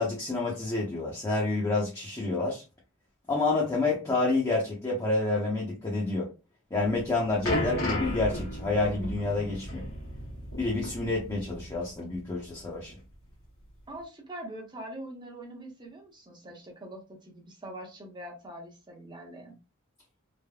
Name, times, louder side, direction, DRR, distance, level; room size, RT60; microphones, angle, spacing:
voice 1, 0.0-2.6 3.3-6.3 6.7-9.9 10.6-13.0, left 3 dB, 20° left, 0.7 m, -28 dB
sound 1, 6.9-11.7 12.0-12.2 12.9-13.0, equal, 80° left, 1.4 m, -34 dB
voice 2, 13.9-19.6, right 1 dB, 20° right, 0.8 m, -43 dB
3.3 x 2.1 x 2.3 m
head